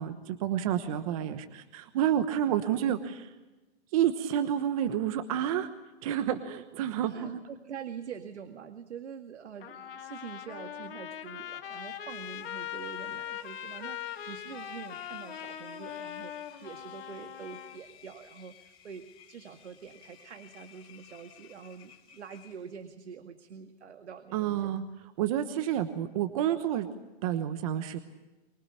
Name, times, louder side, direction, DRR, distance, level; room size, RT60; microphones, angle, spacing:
voice 1, 0.0-3.3 3.9-5.7 6.0-7.4 24.3-24.8 25.2-26.9 27.2-28.0, right 10 dB, 30° right, 10 dB, 1.1 m, -29 dB
voice 2, 7.1-24.7, right 7 dB, 90° right, 7 dB, 2.1 m, -45 dB
Trumpet, 9.6-17.8, left 10 dB, 55° left, 2.3 m, -41 dB
Engine, 12.1-22.9, left 8 dB, 15° left, 2.4 m, -57 dB
24.5 x 20.5 x 8.5 m, 1.1 s
hypercardioid pair, 165°, 33 cm